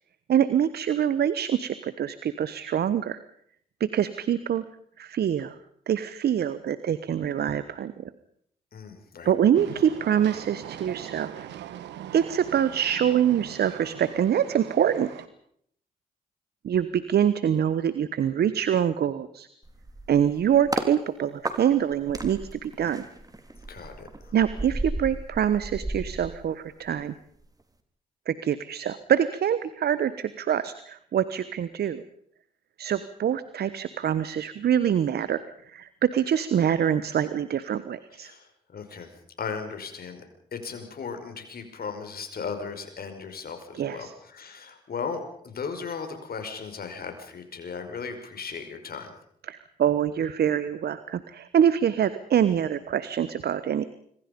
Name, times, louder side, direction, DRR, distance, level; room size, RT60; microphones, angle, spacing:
voice 1, 0.3-3.2 3.8-4.6 5.0-5.6 5.9-8.1 9.2-11.3 12.1-15.1 16.6-19.5 20.1-23.0 24.3-27.1 28.3-32.0 32.8-38.3 43.7-44.1 49.5-53.8, right 9 dB, 65° right, 14 dB, 1.1 m, -25 dB
voice 2, 8.7-9.3 23.7-24.4 38.1-40.2 40.5-49.1, left 5 dB, 60° left, 6 dB, 5.5 m, -37 dB
Train, 9.5-15.3, right 11 dB, 80° right, 1.4 m, -41 dB
sound 1, 19.6-20.9 21.4-27.0 27.3-27.6, right 2 dB, 20° right, 3.7 m, -35 dB
26.0 x 23.5 x 5.3 m, 0.66 s
supercardioid pair, 45°, 18 cm